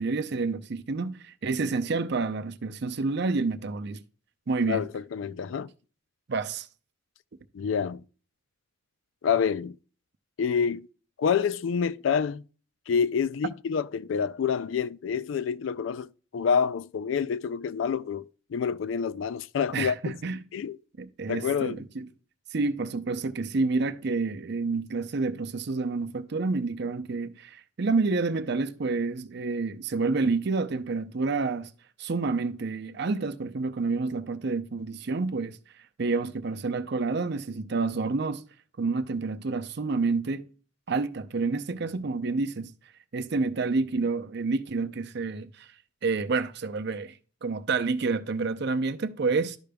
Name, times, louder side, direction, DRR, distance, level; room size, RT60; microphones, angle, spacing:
voice 1, 0.0-4.0 4.5-4.8 6.3-6.7 19.7-20.4 21.0-22.1 22.5-31.7 32.0-35.6 36.0-38.4 38.8-40.5 40.9-42.7 43.1-45.7 46.0-49.6, right 4 dB, 60° right, 0.6 m, -29 dB
voice 2, 4.6-5.7 7.5-8.0 9.2-9.8 10.4-10.9 11.2-12.4 12.9-20.1 20.5-20.8 21.3-21.8, left 6 dB, 70° left, 0.3 m, -27 dB
12.0 x 5.1 x 2.3 m
head